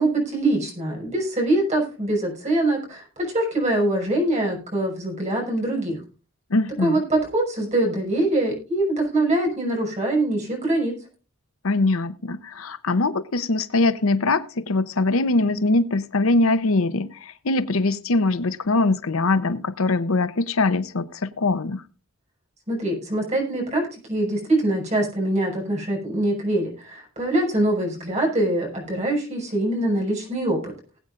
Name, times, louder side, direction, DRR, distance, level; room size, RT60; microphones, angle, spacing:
voice 1, 0.0-6.0 6.8-10.9 22.7-30.7, right 1 dB, 30° right, 0 dB, 5.8 m, -23 dB
voice 2, 6.5-7.0 11.6-21.8, left 2 dB, 75° left, 14 dB, 0.7 m, -22 dB
20.0 x 8.7 x 2.5 m, 0.35 s
head